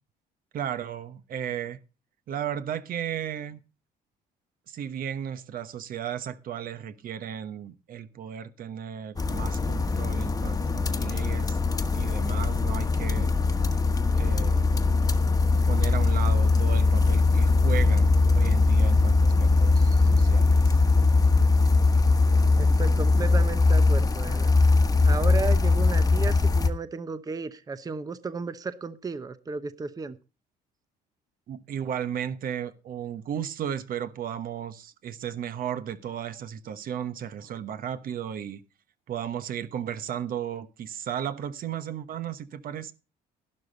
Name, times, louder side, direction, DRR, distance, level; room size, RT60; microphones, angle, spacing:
voice 1, 0.5-1.8 2.3-3.6 4.7-11.6 11.9-13.3 14.2-14.7 15.6-20.8 31.5-38.6 39.1-42.9, right 9 dB, 55° right, 1.1 m, -35 dB
sound 1, 9.2-26.7, left 3 dB, 20° left, 1.3 m, -21 dB
voice 2, 22.5-24.5 25.0-30.2, right 4 dB, 20° right, 0.8 m, -34 dB
12.0 x 11.5 x 4.0 m
cardioid pair, 110°, 17 cm